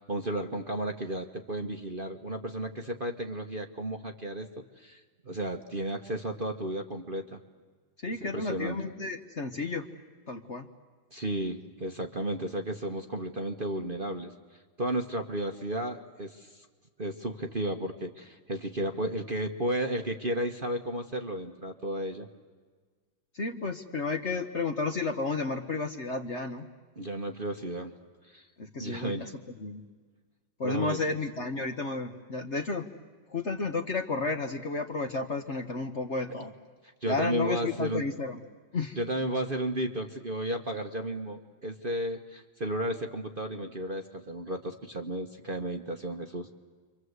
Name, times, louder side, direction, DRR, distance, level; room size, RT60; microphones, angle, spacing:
voice 1, 0.0-4.5 4.8-7.4 8.2-8.8 11.1-14.3 14.8-16.7 17.0-22.3 27.0-27.9 28.2-28.5 28.8-29.3 30.6-31.0 37.0-38.0 39.0-46.5, right 1 dB, 35° right, 4 dB, 1.1 m, -33 dB
voice 2, 8.0-9.9 10.3-10.7 23.3-26.7 28.6-29.3 29.6-29.8 30.6-32.9 33.3-36.5 37.1-38.4 38.7-39.0, left 3 dB, 45° left, 5 dB, 1.2 m, -32 dB
30.0 x 25.0 x 8.1 m, 1.5 s
omnidirectional pair, 2.1 m